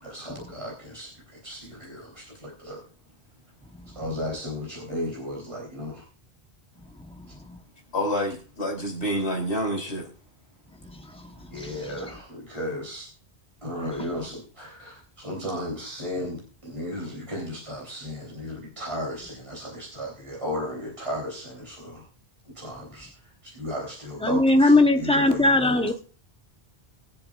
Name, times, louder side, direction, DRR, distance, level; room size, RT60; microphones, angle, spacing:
voice 1, 0.0-1.1 1.4-2.8 4.0-6.0 11.5-13.1 13.6-22.0 22.6-23.1 23.4-25.9, left 1 dB, 30° right, -2 dB, 3.5 m, -35 dB
voice 2, 7.9-10.0, equal, 80° left, 2 dB, 3.4 m, -27 dB
voice 3, 24.2-25.9, left 2 dB, 5° left, 5 dB, 0.9 m, -19 dB
23.0 x 7.7 x 2.4 m, 0.37 s
omnidirectional pair, 1.1 m